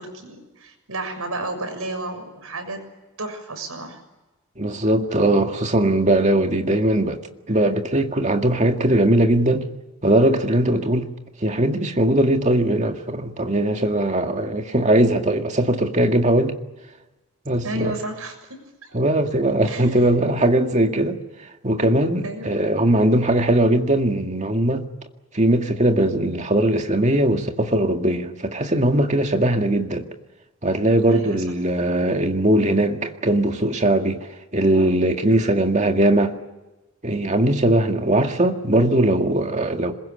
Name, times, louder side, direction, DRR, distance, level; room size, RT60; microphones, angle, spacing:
voice 1, 0.0-2.8 3.2-4.0 17.6-18.9 19.6-20.0 22.2-22.5 31.0-31.4, right 2 dB, 85° right, 6.8 m, -32 dB
voice 2, 4.6-7.2 7.5-9.7 10.0-11.1 11.4-16.6 17.5-17.9 18.9-21.2 21.6-24.9 25.3-30.1 30.6-34.2 34.5-36.3 37.0-39.9, right 1 dB, 35° right, 2.0 m, -20 dB
26.5 x 21.5 x 8.8 m
head